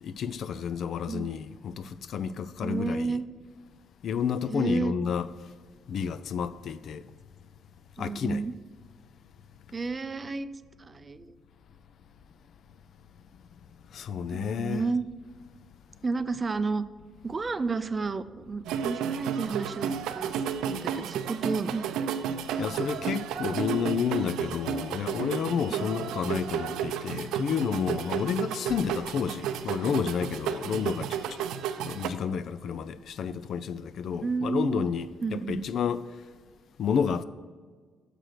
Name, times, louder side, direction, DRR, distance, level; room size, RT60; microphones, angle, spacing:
voice 1, 0.0-3.2 4.0-5.3 5.9-7.0 8.0-8.4 13.9-14.8 22.6-31.2 31.8-35.1 35.3-36.0 36.8-37.2, left 7 dB, 65° left, 0.4 m, -30 dB
voice 2, 2.6-3.3 4.5-4.9 8.0-8.5 9.7-10.5 10.8-11.4 14.3-15.0 16.0-16.8 17.2-21.9 25.7-25.9 28.2-28.6 34.2-34.9 35.2-35.7, right 4 dB, 30° right, 0.4 m, -31 dB
sound 1, 18.6-32.1, right 8 dB, 90° right, 0.5 m, -32 dB
6.7 x 6.3 x 5.9 m
cardioid pair, 90°, 0 cm